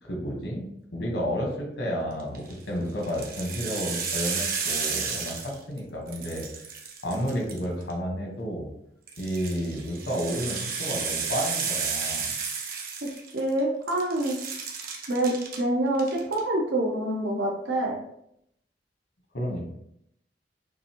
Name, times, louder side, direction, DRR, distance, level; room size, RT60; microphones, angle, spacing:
voice 1, 0.0-6.7 7.0-8.7 9.2-12.3 19.3-19.7, equal, 75° left, 0 dB, 1.4 m, -31 dB
rainstick raining, 2.2-2.5 3.0-5.8 6.1-7.9 9.1-13.6 13.9-15.6 15.9-16.4, right 5 dB, 55° right, 0.9 m, -32 dB
voice 2, 13.3-14.4 15.1-18.0, right 1 dB, 85° right, -1 dB, 0.9 m, -26 dB
6.5 x 2.6 x 3.1 m, 0.75 s
head